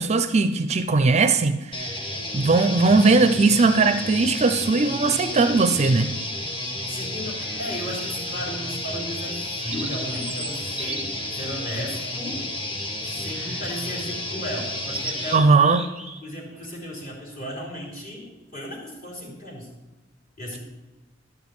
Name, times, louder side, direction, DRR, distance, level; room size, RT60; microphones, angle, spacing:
voice 1, 0.0-1.9 2.3-6.1 15.3-15.8, right 3 dB, 35° right, 0.5 m, -19 dB
sound 1, 1.7-15.4, left 1 dB, 25° left, 1.3 m, -31 dB
sound 2, 5.8-6.3 7.4-8.1 8.5-8.6 9.2-12.6 13.3-13.8 14.2-14.3 14.7-16.2 16.5-16.8, right 3 dB, 5° right, 0.9 m, -38 dB
voice 2, 6.9-12.4 13.0-15.9 16.2-19.7 20.4-20.6, equal, 45° left, 3.3 m, -35 dB
12.0 x 5.2 x 8.2 m
head